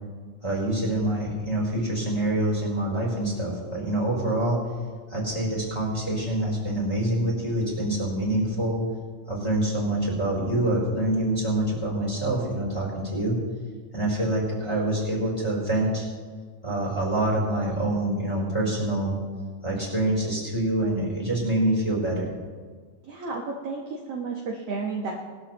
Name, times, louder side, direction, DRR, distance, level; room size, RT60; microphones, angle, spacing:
voice 1, 0.4-4.6 5.1-8.8 9.3-13.4 13.9-16.1 16.6-19.1 19.6-22.3, right 1 dB, 10° left, -5 dB, 3.6 m, -26 dB
voice 2, 23.0-25.1, right 4 dB, 60° right, -1 dB, 1.6 m, -32 dB
20.5 x 13.0 x 3.1 m, 1.5 s
omnidirectional pair, 4.2 m